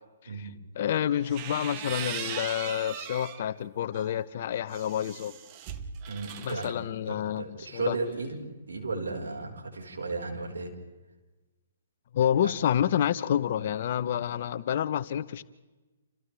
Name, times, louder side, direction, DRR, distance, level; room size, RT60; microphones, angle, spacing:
voice 1, 0.8-5.3 6.4-8.0 12.1-15.4, left 10 dB, 50° left, 14 dB, 0.9 m, -28 dB
sound 1, 1.1-3.4 3.9-6.7, right 9 dB, 35° right, 1.2 m, -39 dB
voice 2, 6.1-6.7 7.1-8.4 8.7-10.7 12.4-12.5, right 3 dB, 85° right, 1 dB, 5.0 m, -34 dB
30.0 x 28.0 x 3.5 m, 1.2 s
hypercardioid pair, 140°, 0 cm